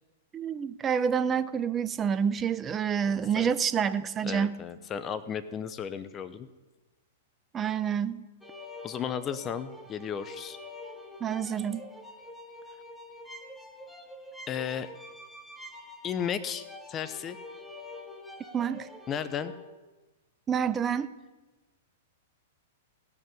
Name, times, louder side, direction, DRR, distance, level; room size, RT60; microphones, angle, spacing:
voice 1, 0.3-4.5 7.5-8.2 11.2-11.8 18.5-18.9 20.5-21.1, right 7 dB, 20° right, 13 dB, 0.7 m, -28 dB
voice 2, 3.1-3.5 4.2-6.5 8.8-10.6 14.5-14.9 16.0-17.4 19.1-19.5, left 8 dB, 25° left, 13 dB, 0.8 m, -34 dB
sound 1, 8.4-19.7, left 2 dB, ahead, 1.8 m, -46 dB
17.5 x 6.5 x 9.1 m, 1.2 s
hypercardioid pair, 110°, 0 cm